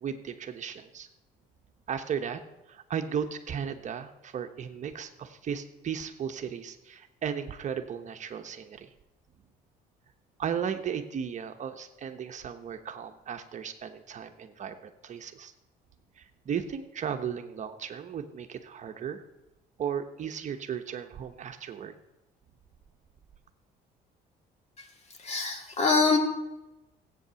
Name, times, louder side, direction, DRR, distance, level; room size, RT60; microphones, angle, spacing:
voice 1, 0.0-1.1 1.9-2.4 2.7-8.9 10.4-15.5 16.2-19.2 19.8-22.0, right 7 dB, 45° right, 7 dB, 1.0 m, -35 dB
voice 2, 25.2-26.2, left 4 dB, 40° left, 4 dB, 2.4 m, -24 dB
14.5 x 8.5 x 6.9 m, 1.0 s
cardioid pair, 110°, 17 cm